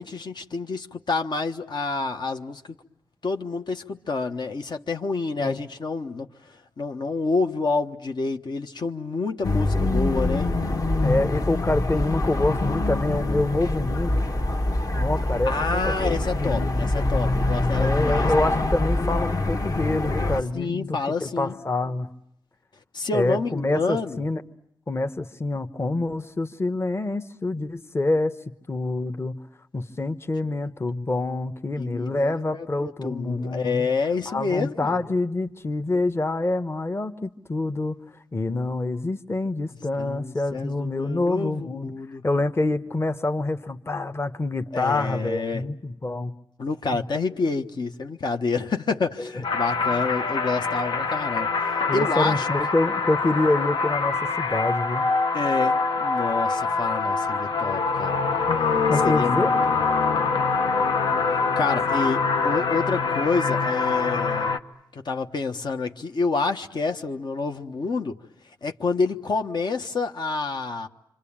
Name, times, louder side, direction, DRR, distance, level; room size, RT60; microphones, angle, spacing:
voice 1, 0.0-2.7 3.2-10.5 15.4-18.6 20.5-21.5 22.9-24.2 31.8-35.0 40.0-42.2 44.7-45.6 46.6-52.5 55.3-58.2 59.0-59.8 61.6-64.5 64.9-68.2 68.6-70.9, left 4 dB, 65° left, 5 dB, 1.3 m, -28 dB
sound 1, 9.4-20.4, left 2 dB, 50° left, 1.6 m, -24 dB
voice 2, 11.0-14.3 14.9-16.7 17.8-22.1 23.1-24.4 24.9-28.3 28.7-29.4 29.7-33.9 34.3-38.0 38.3-41.9 42.2-46.3 46.9-47.0 49.2-49.3 51.9-55.0 58.9-59.5, left 2 dB, 30° left, 9 dB, 1.2 m, -26 dB
sound 2, 49.4-64.6, left 4 dB, 90° left, 1.2 m, -24 dB
26.5 x 25.5 x 8.8 m, 0.76 s
cardioid pair, 65°, 8 cm